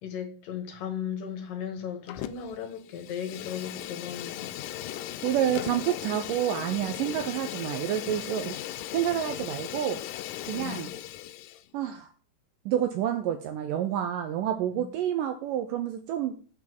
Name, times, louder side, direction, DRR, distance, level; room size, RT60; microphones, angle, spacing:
voice 1, 0.0-4.5 10.5-10.9 14.7-14.8, left 8 dB, 65° left, 2.8 m, -36 dB
Fire, 2.1-2.6 2.9-11.6, left 13 dB, 85° left, 1.8 m, -37 dB
voice 2, 5.2-8.6 8.9-10.0 10.5-10.9 11.7-12.1 12.7-16.4, right 11 dB, 80° right, 2.0 m, -29 dB
7.3 x 5.9 x 6.0 m
omnidirectional pair, 4.4 m